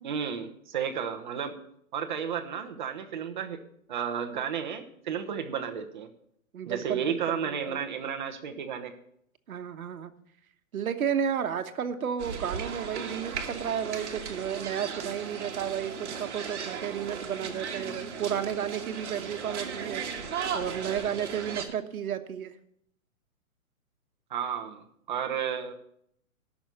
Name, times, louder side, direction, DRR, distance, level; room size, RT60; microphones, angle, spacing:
voice 1, 0.0-1.6 1.9-6.1 6.6-8.9 24.3-25.7, right 7 dB, 35° right, 5 dB, 1.0 m, -33 dB
voice 2, 6.5-7.8 9.5-10.1 10.7-22.5, right 8 dB, 80° right, 8 dB, 1.2 m, -32 dB
sound 1, 12.2-21.7, right 6 dB, 55° right, 1.8 m, -36 dB
13.0 x 6.3 x 6.7 m, 0.73 s
hypercardioid pair, 170°, 42 cm